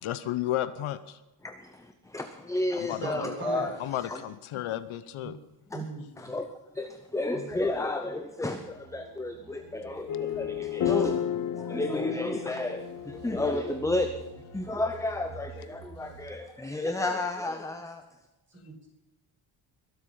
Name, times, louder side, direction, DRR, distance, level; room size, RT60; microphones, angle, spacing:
voice 1, 0.0-1.2 2.8-3.3 3.8-5.4, left 13 dB, 75° left, 14 dB, 1.0 m, -33 dB
voice 2, 1.4-3.7 4.0-4.2 5.7-5.9 6.2-11.2 11.6-14.1 14.5-18.0, left 2 dB, 5° left, 7 dB, 0.7 m, -32 dB
voice 3, 3.0-3.7 5.2-5.4 5.7-6.3 7.3-7.5 16.7-16.8 18.5-18.9, right 2 dB, 20° right, -2 dB, 6.0 m, -38 dB
sound 1, 7.5-16.5, right 6 dB, 75° right, 2.1 m, -50 dB
sound 2, 10.1-14.5, left 10 dB, 40° left, 0.9 m, -32 dB
22.0 x 8.1 x 5.6 m, 1.0 s
cardioid pair, 160°, 50 cm